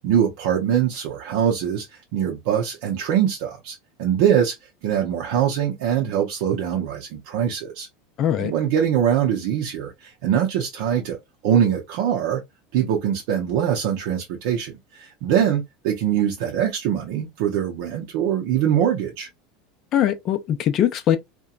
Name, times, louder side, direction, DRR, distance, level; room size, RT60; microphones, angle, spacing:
voice 1, 0.0-1.9 2.1-4.6 4.8-7.9 8.4-11.2 11.4-12.4 12.7-19.3, right 9 dB, 70° right, 0.6 m, -23 dB
voice 2, 8.2-8.5 19.9-21.2, left 10 dB, 45° left, 0.5 m, -21 dB
2.8 x 2.2 x 2.3 m
supercardioid pair, 110°, 0 cm